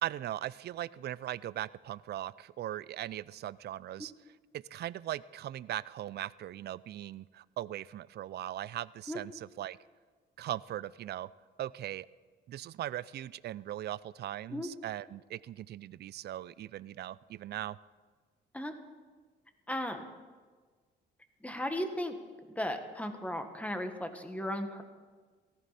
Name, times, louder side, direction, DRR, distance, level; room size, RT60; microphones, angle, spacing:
voice 1, 0.0-4.1 4.5-9.8 10.4-11.3 11.6-12.1 12.5-17.8, right 13 dB, 55° right, 19 dB, 0.4 m, -39 dB
voice 2, 19.7-20.0 21.4-22.2 22.5-24.8, left 1 dB, 5° left, 6 dB, 1.6 m, -36 dB
18.0 x 14.5 x 4.2 m, 1.5 s
cardioid pair, 90°, 20 cm